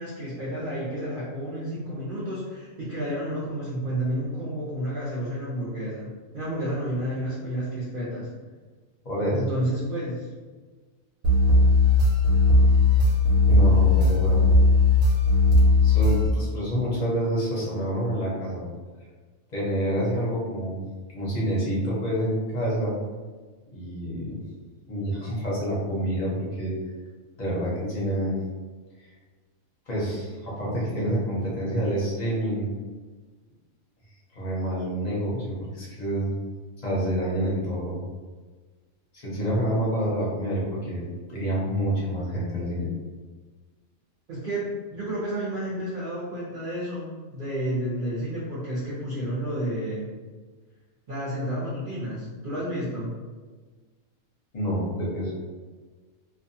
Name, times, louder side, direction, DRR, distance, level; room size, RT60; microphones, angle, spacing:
voice 1, 0.0-6.1 6.3-8.3 9.3-10.3 44.3-50.1 51.1-53.1, right 1 dB, 50° right, -9 dB, 0.8 m, -31 dB
voice 2, 9.0-9.5 13.5-14.4 15.8-18.6 19.5-20.8 21.1-23.0 23.7-24.4 24.9-26.7 27.4-28.4 29.9-32.7 34.3-36.3 36.8-38.0 39.1-42.9 54.5-55.3, right 1 dB, 40° left, -6 dB, 0.7 m, -27 dB
sound 1, 11.2-16.3, left 2 dB, 85° right, 1.1 m, -18 dB
2.6 x 2.3 x 2.6 m, 1.4 s
omnidirectional pair, 1.4 m